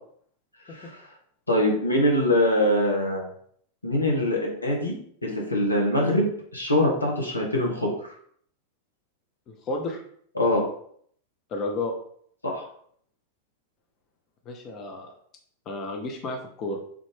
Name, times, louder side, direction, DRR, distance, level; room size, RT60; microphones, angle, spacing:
voice 1, 0.7-1.0 1.5-3.3 3.8-7.9 10.4-10.6 12.4-12.7, left 1 dB, 80° left, -1 dB, 0.9 m, -23 dB
voice 2, 9.5-10.0 11.5-11.9 14.5-15.1 15.7-16.8, left 2 dB, 35° left, 2 dB, 0.6 m, -32 dB
3.3 x 2.5 x 3.3 m, 0.62 s
figure-of-eight pair, 90°, 0 cm